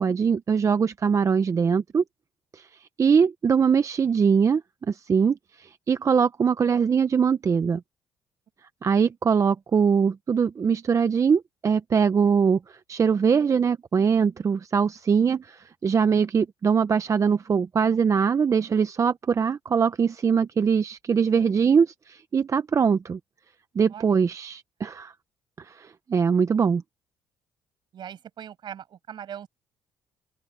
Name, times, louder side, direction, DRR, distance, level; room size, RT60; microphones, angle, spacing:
voice 1, 0.0-2.0 2.5-4.6 4.9-7.8 8.8-23.2 23.7-25.1 25.6-26.8, right 6 dB, 35° right, 0.7 m, -22 dB
voice 2, 27.9-29.5, right 9 dB, 60° right, 7.4 m, -40 dB
open air
cardioid pair, 90°, 9 cm